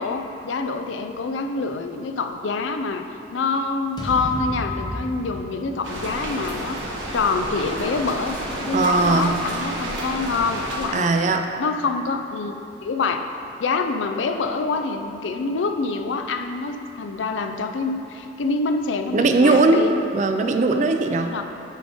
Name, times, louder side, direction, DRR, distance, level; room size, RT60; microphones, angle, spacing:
voice 1, 0.0-3.1 3.3-11.1 11.6-13.3 13.6-19.9 21.3-21.4, left 4 dB, 80° left, 7 dB, 0.4 m, -26 dB
sound 1, 4.0-8.2, equal, 20° left, 0.6 m, -35 dB
sound 2, 5.8-10.9, right 1 dB, 85° right, 1.1 m, -31 dB
voice 2, 8.7-9.4 10.9-11.5 19.1-19.8 20.1-21.4, right 3 dB, 40° right, 6 dB, 0.3 m, -19 dB
8.3 x 3.7 x 5.1 m, 2.9 s
head